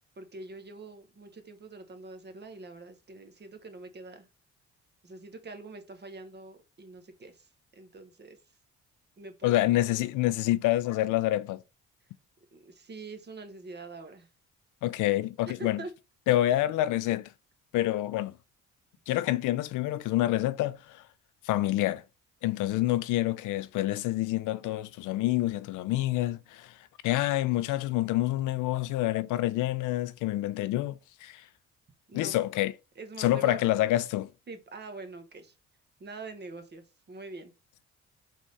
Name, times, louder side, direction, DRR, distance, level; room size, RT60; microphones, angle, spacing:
voice 1, 0.2-4.3 5.0-8.4 9.2-10.1 12.5-14.3 15.5-15.9 32.1-32.4 33.0-33.6 34.5-35.5 36.0-37.5, right 3 dB, 35° right, 1.0 m, -44 dB
voice 2, 9.4-11.6 14.8-15.8 16.3-17.3 17.7-18.3 19.1-21.0 21.4-22.0 22.4-26.7 27.0-31.4 32.1-32.7 33.2-34.3, left 15 dB, 85° left, 0.5 m, -27 dB
3.6 x 3.3 x 4.0 m
cardioid pair, 90°, 30 cm